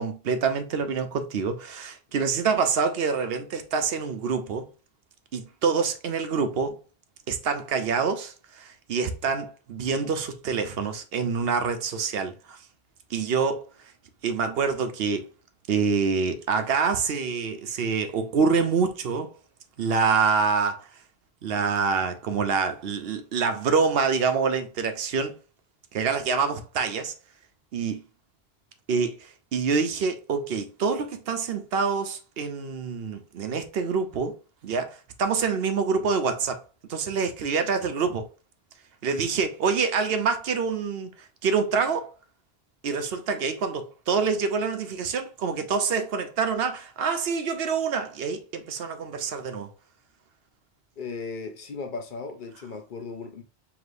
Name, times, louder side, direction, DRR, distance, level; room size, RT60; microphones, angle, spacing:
voice 1, 0.0-4.7 5.3-6.8 7.3-12.6 13.1-13.7 14.2-15.3 15.7-19.3 19.8-20.9 21.4-25.3 25.9-27.1 27.7-28.0 28.9-34.3 34.6-36.6 36.9-38.3 39.0-42.1 42.8-49.7, right 5 dB, 75° right, 0.9 m, -26 dB
voice 2, 51.0-53.4, left 4 dB, 55° left, 0.8 m, -36 dB
4.9 x 3.0 x 2.5 m
omnidirectional pair, 1.0 m